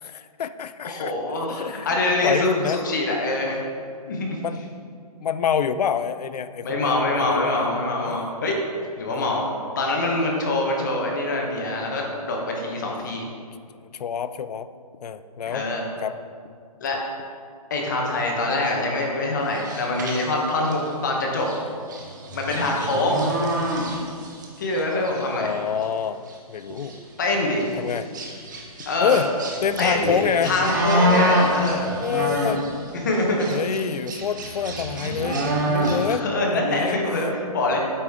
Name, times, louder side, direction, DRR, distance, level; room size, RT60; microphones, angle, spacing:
voice 1, 0.0-1.1 1.4-2.9 4.4-4.6 5.2-7.6 8.1-8.2 9.1-9.4 12.9-13.1 13.9-14.7 15.0-15.6 16.0-16.2 25.4-26.2 26.5-27.0 27.8-28.1 29.0-29.3 29.6-30.5 32.0-32.7 33.5-36.2 36.5-37.0, left 7 dB, 85° left, 13 dB, 0.4 m, -27 dB
voice 2, 0.8-3.6 4.1-4.4 6.6-8.6 9.0-9.4 9.8-13.2 15.5-15.9 16.8-17.0 17.7-21.5 22.3-23.2 24.6-25.5 27.2-27.6 28.9-29.2 29.8-31.9 33.0-33.5 36.1-37.8, left 2 dB, 30° left, 0 dB, 0.9 m, -24 dB
sound 1, 19.5-20.9 21.4-21.6 21.9-24.5 24.7-25.2 25.8-25.9 26.3-26.4 26.7-26.9 27.6-32.8 33.1-36.1, right 1 dB, 30° right, 0.7 m, -26 dB
8.4 x 4.9 x 3.5 m, 2.2 s
hypercardioid pair, 175°, 20 cm